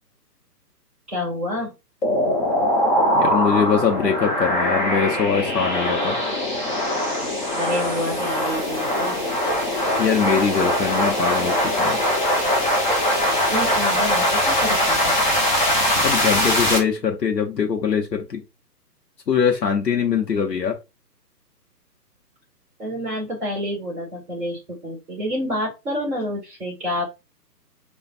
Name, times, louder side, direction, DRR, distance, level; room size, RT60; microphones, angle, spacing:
voice 1, 1.1-1.7 7.6-9.2 13.5-15.1 20.1-20.3 22.8-27.0, equal, ahead, -14 dB, 0.6 m, -28 dB
sound 1, 2.0-16.8, left 1 dB, 30° left, 0.8 m, -21 dB
voice 2, 3.1-6.2 10.0-12.0 16.0-18.4 19.3-20.8, left 7 dB, 80° left, 2 dB, 0.9 m, -22 dB
5.1 x 2.4 x 2.5 m, 0.25 s
figure-of-eight pair, 140°, 49 cm